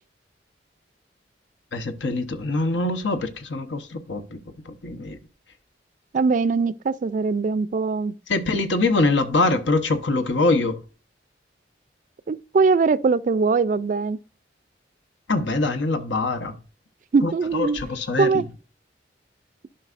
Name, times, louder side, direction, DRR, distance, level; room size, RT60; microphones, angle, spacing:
voice 1, 1.7-4.4 4.7-5.2 8.3-10.8 15.3-16.6 17.2-18.4, left 2 dB, 85° left, 1.0 m, -24 dB
voice 2, 6.1-8.1 12.3-14.2 17.1-17.8 18.2-18.4, right 4 dB, 45° right, 0.3 m, -21 dB
11.5 x 5.4 x 2.5 m
head